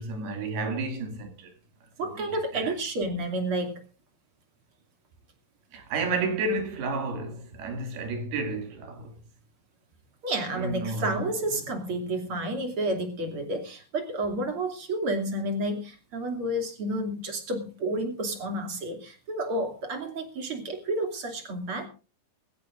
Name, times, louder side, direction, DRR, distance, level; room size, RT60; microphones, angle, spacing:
voice 1, 0.0-1.5 2.0-2.3 2.5-2.7 5.7-9.2 10.5-11.3, right 3 dB, 75° right, 4.3 m, -31 dB
voice 2, 2.0-3.8 10.2-21.9, right 1 dB, 35° right, 3.1 m, -30 dB
21.0 x 16.0 x 2.5 m
omnidirectional pair, 4.5 m